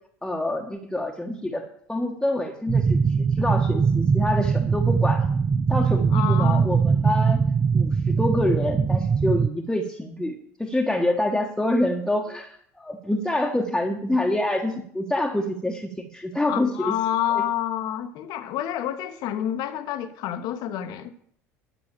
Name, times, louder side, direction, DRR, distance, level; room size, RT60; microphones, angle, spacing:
voice 1, 0.2-1.6 1.9-5.2 5.7-7.4 7.7-16.9 17.3-17.4, left 1 dB, 5° left, 1.4 m, -26 dB
sound 1, 2.7-9.5, right 5 dB, 25° right, 0.5 m, -21 dB
voice 2, 6.1-6.7 16.4-21.1, left 11 dB, 55° left, 1.1 m, -28 dB
12.0 x 6.2 x 7.3 m
figure-of-eight pair, 65°, 8 cm